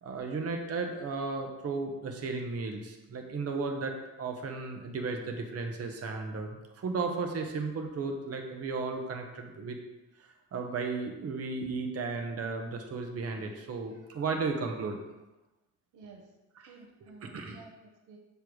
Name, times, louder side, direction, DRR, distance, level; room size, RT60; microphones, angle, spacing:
voice 1, 0.0-9.8 10.2-15.0 16.5-16.8 17.2-17.6, right 4 dB, 55° right, 3 dB, 1.1 m, -35 dB
voice 2, 15.9-16.3 16.6-18.2, right 4 dB, 90° right, 1 dB, 1.0 m, -53 dB
6.8 x 3.4 x 6.1 m, 1.0 s
cardioid pair, 90°, 30 cm